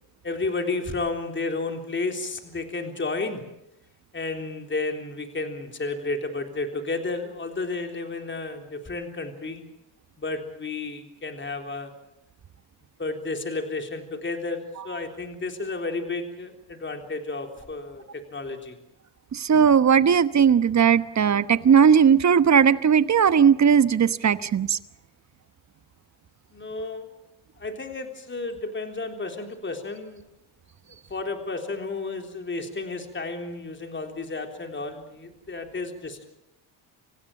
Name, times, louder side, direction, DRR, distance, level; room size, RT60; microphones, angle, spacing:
voice 1, 0.2-3.4 4.1-9.6 10.2-11.9 13.0-18.8 26.5-27.1 27.6-30.2 31.1-36.3, left 3 dB, 25° left, 4 dB, 3.6 m, -32 dB
voice 2, 19.3-24.8, right 7 dB, 35° right, 13 dB, 1.1 m, -18 dB
26.5 x 16.0 x 8.5 m, 0.86 s
cardioid pair, 90°, 49 cm